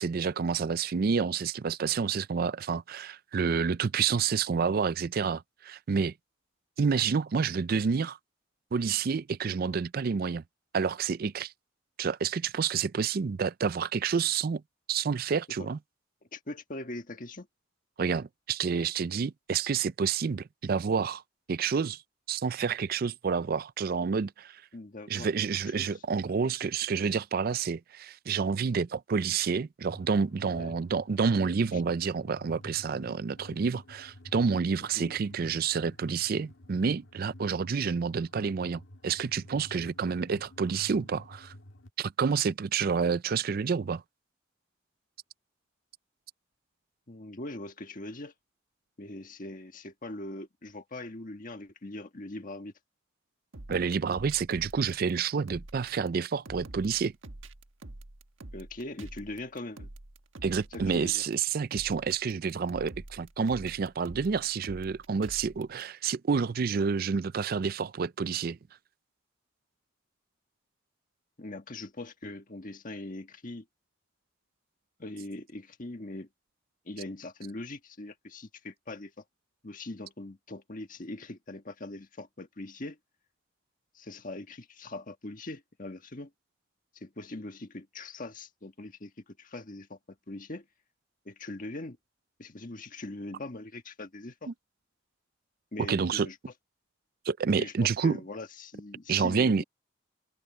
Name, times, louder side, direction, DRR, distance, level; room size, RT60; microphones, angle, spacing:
voice 1, 0.0-6.1 6.8-8.2 8.7-10.4 10.7-11.5 12.0-14.6 14.9-15.8 18.0-21.2 21.5-22.0 22.3-24.6 25.1-41.5 42.0-44.0 53.7-57.1 60.4-68.6 94.5-94.6 95.9-96.3 97.3-98.2 99.1-99.6, right 5 dB, 50° right, 0.4 m, -29 dB
voice 2, 16.3-17.5 24.7-25.3 25.8-25.9 30.4-30.7 31.7-31.8 34.9-35.2 47.1-48.3 49.0-52.7 58.5-59.9 60.7-61.2 71.4-73.6 75.0-76.3 76.8-79.1 79.6-83.0 83.9-86.3 86.9-90.6 91.2-92.0 92.4-94.5 95.7-96.4 97.6-99.6, left 2 dB, 45° left, 1.6 m, -41 dB
sound 1, 29.8-41.9, left 1 dB, 80° left, 1.8 m, -51 dB
sound 2, 53.5-65.8, right 2 dB, 85° right, 1.4 m, -46 dB
open air
head